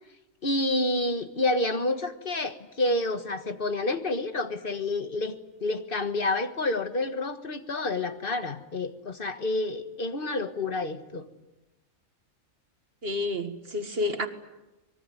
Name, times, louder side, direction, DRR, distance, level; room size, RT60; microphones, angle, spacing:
voice 1, 0.4-11.3, left 2 dB, 40° left, 9 dB, 1.7 m, -29 dB
voice 2, 13.0-14.3, left 2 dB, 45° right, 8 dB, 2.0 m, -29 dB
24.5 x 22.0 x 9.7 m, 1.0 s
omnidirectional pair, 1.4 m